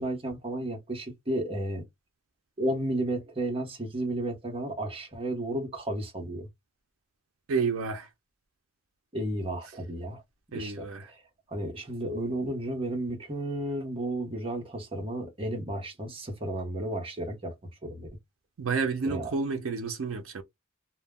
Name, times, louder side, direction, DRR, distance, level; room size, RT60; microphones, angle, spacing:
voice 1, 0.0-1.8 2.6-6.5 9.1-10.2 10.5-11.2 11.5-17.5 17.8-18.1 19.0-19.3, right 1 dB, 25° right, 0.8 m, -33 dB
voice 2, 7.5-8.1 10.5-11.1 18.6-20.4, right 4 dB, 75° right, 0.5 m, -30 dB
2.2 x 2.1 x 3.5 m
head